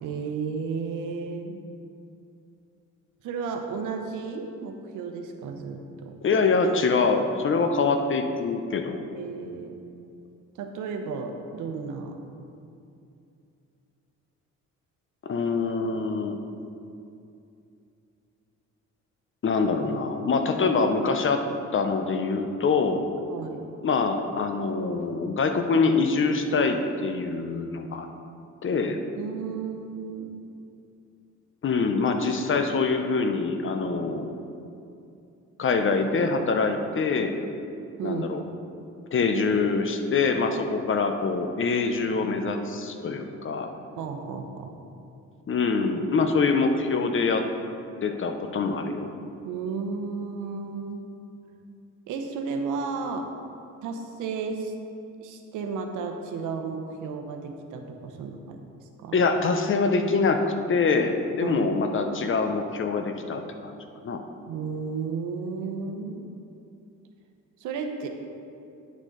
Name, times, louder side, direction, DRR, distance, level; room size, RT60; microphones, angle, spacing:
voice 1, 0.0-1.6 3.2-6.2 9.1-9.8 10.6-12.2 23.3-23.6 29.1-30.4 38.0-38.3 43.9-44.7 49.4-51.0 52.1-53.3 53.8-54.7 55.2-58.6 59.0-59.2 61.4-61.7 64.5-66.2 67.6-68.1, right 5 dB, 90° right, 5 dB, 0.9 m, -33 dB
voice 2, 6.2-9.1 15.2-16.4 19.4-21.4 21.7-23.0 23.8-26.8 27.0-28.1 28.6-29.0 31.6-34.3 35.6-37.3 38.0-38.4 39.1-43.7 45.5-47.5 48.0-49.1 59.1-60.4 60.7-63.7 64.0-64.2, left 4 dB, 40° left, 6 dB, 0.8 m, -24 dB
9.8 x 6.3 x 3.9 m, 2.6 s
cardioid pair, 90°, 30 cm